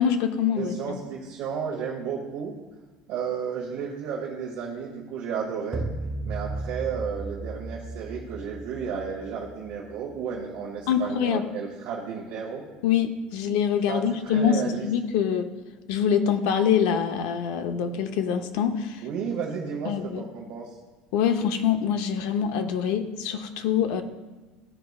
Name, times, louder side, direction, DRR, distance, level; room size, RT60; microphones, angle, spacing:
voice 1, 0.0-1.0 10.9-11.4 12.8-15.5 15.9-19.0 19.8-20.2 21.1-24.0, left 8 dB, 65° left, 8 dB, 0.6 m, -25 dB
voice 2, 0.6-2.5 3.1-5.9 6.3-12.6 13.9-14.9 19.0-20.7, right 6 dB, 55° right, -4 dB, 1.1 m, -33 dB
sound 1, 5.7-10.2, right 2 dB, 10° right, 0.4 m, -35 dB
13.0 x 4.7 x 2.3 m, 1.2 s
cardioid pair, 170°, 3 cm